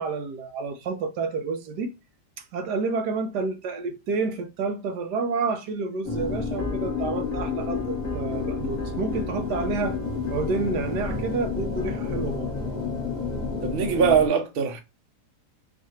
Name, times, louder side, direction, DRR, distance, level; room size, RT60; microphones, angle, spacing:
voice 1, 0.0-1.9 2.5-10.0 10.3-12.5, right 4 dB, 90° right, 1.4 m, -29 dB
sound 1, 6.0-14.3, left 4 dB, 30° left, 1.3 m, -30 dB
voice 2, 13.6-14.8, right 6 dB, 50° right, 0.7 m, -22 dB
4.7 x 2.6 x 4.2 m
omnidirectional pair, 1.8 m